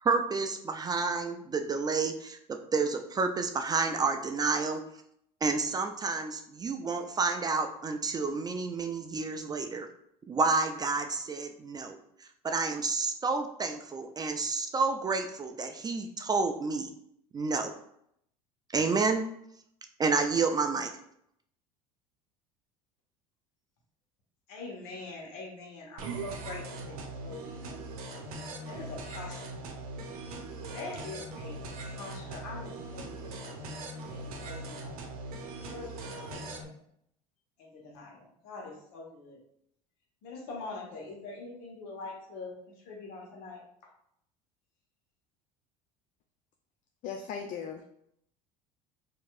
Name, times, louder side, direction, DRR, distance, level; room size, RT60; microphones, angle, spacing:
voice 1, 0.0-4.8 5.4-9.9 10.3-12.0 12.4-16.9 17.3-17.7 18.7-19.3 20.0-20.9, right 4 dB, 20° right, 6 dB, 0.4 m, -30 dB
voice 2, 24.5-27.8 28.7-29.6 30.6-33.3 34.1-35.0 35.7-36.7 37.6-39.4 40.2-42.5 42.8-43.9, left 3 dB, 65° left, -1 dB, 1.2 m, -44 dB
sound 1, 26.0-36.6, right 2 dB, 75° right, 0.6 m, -40 dB
voice 3, 47.0-47.8, left 6 dB, 45° left, 3 dB, 0.4 m, -37 dB
4.4 x 2.8 x 2.4 m, 0.73 s
hypercardioid pair, 75°, 19 cm